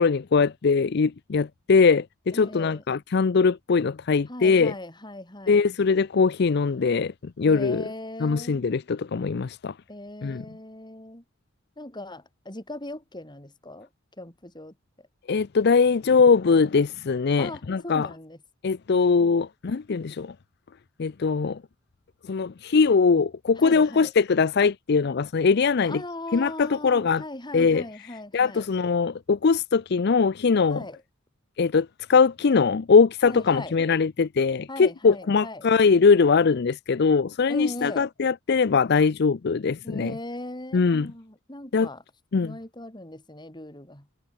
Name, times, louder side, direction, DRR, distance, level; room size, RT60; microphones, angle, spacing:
voice 1, 0.0-4.7 5.5-7.9 8.2-9.7 10.2-10.4 15.3-18.1 18.6-20.3 21.0-21.6 22.3-26.0 26.3-27.2 27.5-27.8 28.3-30.8 31.6-40.1 40.7-41.1 41.7-41.9 42.3-42.6, left 5 dB, 55° left, 0.5 m, -21 dB
voice 2, 2.3-2.8 4.3-5.6 7.4-8.7 9.9-11.2 11.8-13.9 14.2-15.1 17.4-18.4 23.6-24.1 25.8-28.7 30.7-31.0 33.2-33.7 34.7-35.6 37.5-38.1 39.8-42.0 42.3-44.1, left 1 dB, 20° left, 5.2 m, -39 dB
head